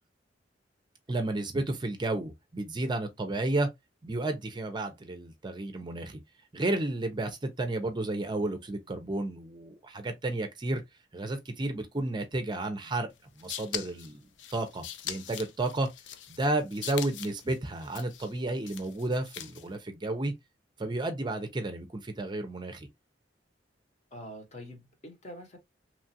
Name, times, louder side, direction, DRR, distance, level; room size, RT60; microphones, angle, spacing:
voice 1, 1.1-3.7 4.0-6.2 6.5-10.8 11.1-13.1 13.4-14.2 14.5-15.9 16.3-20.3 20.8-22.9, right 2 dB, 25° right, 0.5 m, -32 dB
sound 1, 13.2-19.8, left 10 dB, 90° left, 0.4 m, -42 dB
voice 2, 24.1-25.6, equal, 40° left, 0.9 m, -45 dB
3.0 x 2.3 x 2.6 m
head